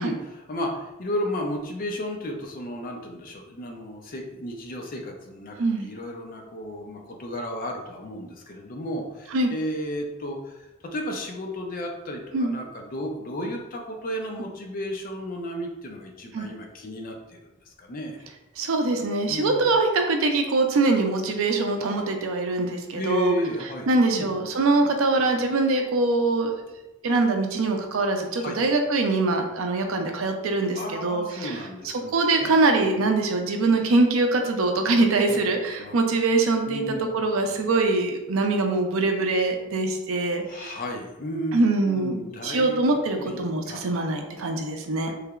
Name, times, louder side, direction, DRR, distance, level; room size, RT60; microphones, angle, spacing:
voice 1, 0.0-17.4 17.7-18.2 19.3-19.6 22.9-24.3 28.3-28.6 30.7-32.1 32.4-32.5 32.8-33.0 35.3-35.4 35.8-36.0 36.7-37.1 37.5-37.6 40.5-42.8 43.2-43.4 43.7-43.8, equal, 45° left, 2 dB, 0.5 m, -33 dB
voice 2, 18.6-23.3 23.9-26.6 27.0-31.6 31.8-40.7 41.5-45.1, right 3 dB, 80° right, 4 dB, 0.5 m, -23 dB
3.2 x 2.8 x 2.4 m, 1.0 s
head